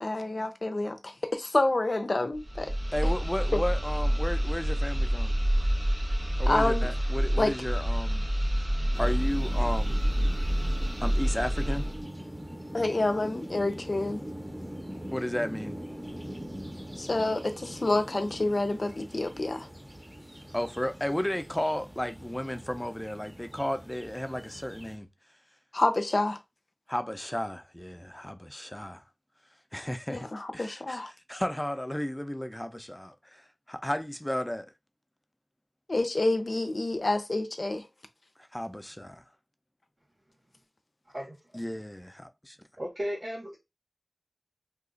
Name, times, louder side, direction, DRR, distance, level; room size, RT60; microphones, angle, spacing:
voice 1, 0.0-2.7 3.5-3.6 6.5-6.9 7.4-7.5 12.7-14.2 17.0-19.7 25.7-26.4 30.1-31.1 35.9-37.9, left 2 dB, 75° left, 0.4 m, -28 dB
sound 1, 2.3-12.0, equal, 60° right, 1.4 m, -27 dB
voice 2, 2.9-5.4 6.4-8.3 9.0-10.1 11.0-11.9 15.1-15.8 20.5-25.1 26.9-29.0 29.7-30.3 30.5-33.4 33.7-34.7 38.5-39.2 41.5-42.6, left 1 dB, 20° left, 0.5 m, -33 dB
sound 2, 8.9-25.0, equal, 15° right, 0.7 m, -42 dB
voice 3, 42.8-43.6, equal, 75° right, 1.4 m, -35 dB
2.8 x 2.3 x 3.8 m
wide cardioid pair, 40°, 0 cm